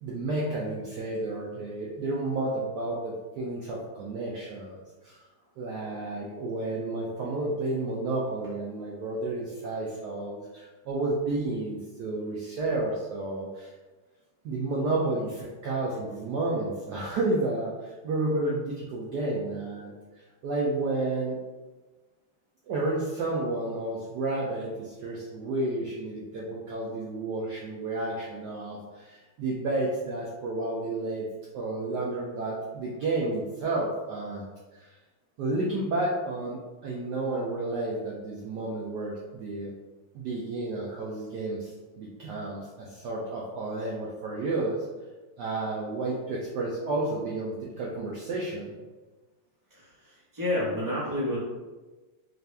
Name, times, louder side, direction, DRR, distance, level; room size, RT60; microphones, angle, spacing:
voice 1, 0.0-5.2 5.6-13.7 14.4-19.9 20.4-21.4 22.7-31.2 31.5-34.9 35.4-39.7 40.1-44.8 45.4-48.7, right 2 dB, 80° right, -4 dB, 0.9 m, -31 dB
voice 2, 49.7-51.4, left 1 dB, 15° right, -8 dB, 0.8 m, -30 dB
4.1 x 2.5 x 3.3 m, 1.2 s
omnidirectional pair, 2.4 m